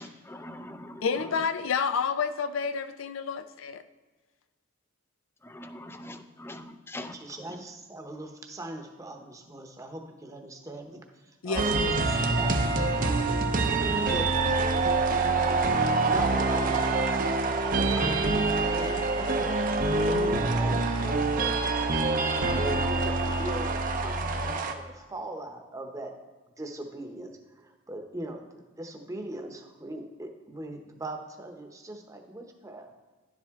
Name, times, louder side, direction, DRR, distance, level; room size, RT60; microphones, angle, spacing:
voice 1, 0.0-1.0 5.4-7.1, left 1 dB, 10° left, 8 dB, 0.5 m, -42 dB
voice 2, 1.0-3.8 11.4-12.0 19.9-20.4, left 5 dB, 80° left, 11 dB, 0.5 m, -30 dB
voice 3, 7.1-11.8 12.4-13.3 14.0-17.3 17.7-19.6 20.1-21.6 22.6-26.1 26.6-32.9, right 1 dB, 15° right, 3 dB, 0.9 m, -40 dB
sound 1, 11.6-24.7, right 3 dB, 40° right, 0.7 m, -26 dB
11.0 x 7.4 x 3.6 m, 1.3 s
head